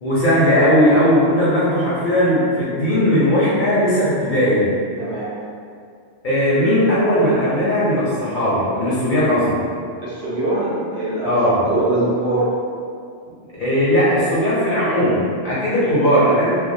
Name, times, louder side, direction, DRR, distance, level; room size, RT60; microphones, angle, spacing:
voice 1, 0.0-4.7 6.2-9.6 11.2-11.6 13.6-16.5, equal, 55° left, -9 dB, 0.6 m, -17 dB
voice 2, 5.0-5.3 10.0-11.4 11.6-12.5 15.8-15.9, right 2 dB, 60° right, -8 dB, 0.7 m, -22 dB
2.2 x 2.2 x 2.6 m, 2.3 s
omnidirectional pair, 1.3 m